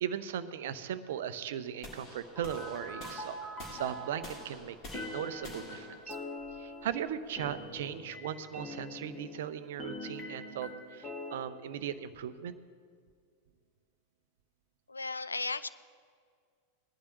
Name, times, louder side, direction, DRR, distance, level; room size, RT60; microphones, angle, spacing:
voice 1, 0.0-3.4 3.7-6.2 6.6-12.6, right 9 dB, 55° right, 13 dB, 0.6 m, -38 dB
sound 1, 1.8-7.9, left 1 dB, 35° left, 3.3 m, -49 dB
sound 2, 2.4-4.4 4.9-9.5 9.8-11.4, left 1 dB, 15° left, 1.7 m, -43 dB
voice 2, 14.9-15.7, left 3 dB, 80° left, 14 dB, 0.4 m, -35 dB
19.5 x 11.5 x 3.1 m, 2.1 s
figure-of-eight pair, 90°, 0 cm